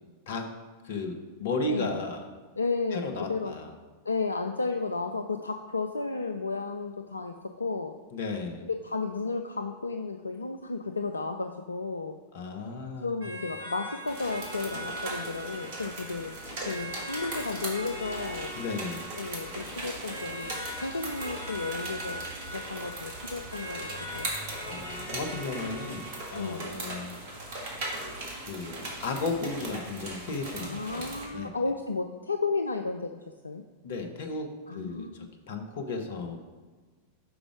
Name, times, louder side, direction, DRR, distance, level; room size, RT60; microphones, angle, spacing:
voice 1, 0.8-2.3 2.9-3.7 8.1-8.7 12.3-13.3 18.5-19.1 24.6-26.0 26.3-27.2 28.4-31.5 33.8-36.4, left 3 dB, 60° left, 5 dB, 0.9 m, -34 dB
voice 2, 1.7-2.0 2.6-3.0 3.3-3.6 4.1-7.9 8.8-12.2 13.0-16.4 16.7-18.5 19.2-22.2 22.5-24.3 26.3-26.7 30.6-33.1 33.4-33.6 34.7-35.3, left 3 dB, 80° left, 6 dB, 0.3 m, -33 dB
sound 1, 13.2-26.8, equal, 80° right, 2.0 m, -42 dB
sound 2, 14.1-31.3, right 1 dB, 55° right, 1.8 m, -39 dB
6.1 x 5.0 x 4.9 m, 1.4 s
figure-of-eight pair, 90°, 0 cm